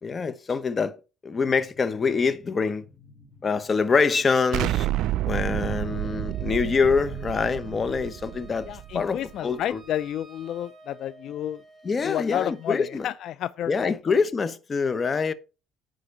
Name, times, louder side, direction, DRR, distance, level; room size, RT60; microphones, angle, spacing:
voice 1, 0.0-0.9 1.2-2.8 3.4-4.9 5.3-8.7 8.9-9.8 11.8-13.1 13.7-15.3, left 5 dB, 30° left, 1.0 m, -25 dB
sound 1, 1.3-7.0, left 4 dB, 15° left, 2.4 m, -54 dB
Explosion, 4.5-9.4, right 14 dB, 70° right, 0.3 m, -29 dB
Wind instrument woodwind instrument, 5.3-13.2, right 3 dB, 15° right, 3.7 m, -51 dB
voice 2, 8.7-11.6 12.0-13.9, left 11 dB, 65° left, 0.3 m, -31 dB
9.9 x 3.9 x 6.6 m
supercardioid pair, 90°, 0 cm